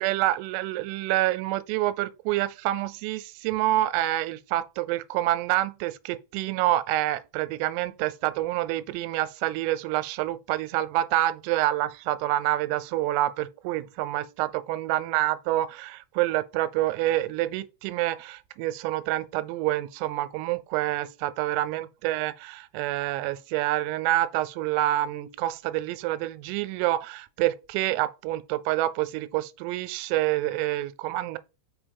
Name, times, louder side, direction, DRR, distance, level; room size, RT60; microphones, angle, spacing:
voice 1, 0.0-31.4, right 15 dB, 90° right, 3.3 m, -27 dB
7.4 x 5.3 x 3.5 m
omnidirectional pair, 5.8 m